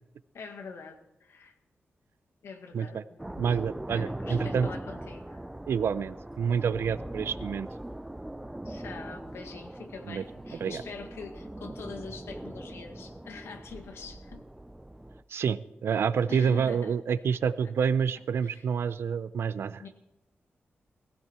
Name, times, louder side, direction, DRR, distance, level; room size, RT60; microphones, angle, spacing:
voice 1, 0.3-1.5 2.4-3.2 3.9-5.5 8.6-14.4 16.3-16.9 18.4-18.6 19.8-19.9, left 5 dB, 85° left, 5 dB, 1.9 m, -44 dB
sound 1, 3.2-15.2, right 1 dB, 5° right, 0.5 m, -40 dB
voice 2, 3.4-4.7 5.7-7.7 10.1-10.2 10.6-10.8 15.3-19.8, right 7 dB, 70° right, 15 dB, 0.6 m, -28 dB
19.5 x 16.0 x 4.4 m, 0.92 s
wide cardioid pair, 175°, 4 cm